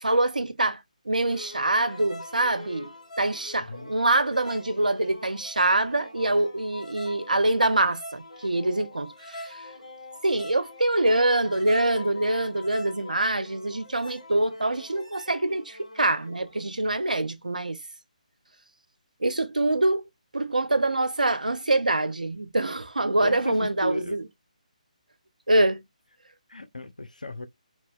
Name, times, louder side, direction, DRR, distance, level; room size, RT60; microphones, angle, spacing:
voice 1, 0.0-0.8 1.1-2.9 3.2-9.6 10.2-17.8 19.2-20.0 20.3-24.2 25.5-25.8, right 2 dB, 75° right, 0.5 m, -25 dB
sound 1, 1.2-16.6, left 1 dB, 55° left, 1.1 m, -44 dB
voice 2, 23.2-24.2 26.5-27.5, left 2 dB, 75° left, 0.6 m, -35 dB
2.8 x 2.2 x 2.3 m
figure-of-eight pair, 145°, 4 cm